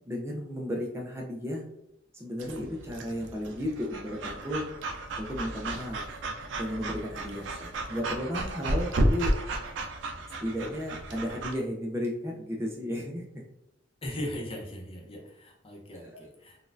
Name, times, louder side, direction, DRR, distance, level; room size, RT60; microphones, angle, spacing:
voice 1, 0.1-1.6 2.1-4.6 5.2-6.0 6.6-9.3 10.4-13.2, equal, 15° right, -2 dB, 0.5 m, -34 dB
Breathing / Dog, 2.4-11.5, right 1 dB, 80° right, 0.4 m, -33 dB
voice 2, 14.0-16.6, left 1 dB, 30° left, 0 dB, 0.7 m, -38 dB
4.0 x 2.3 x 2.5 m, 0.80 s
head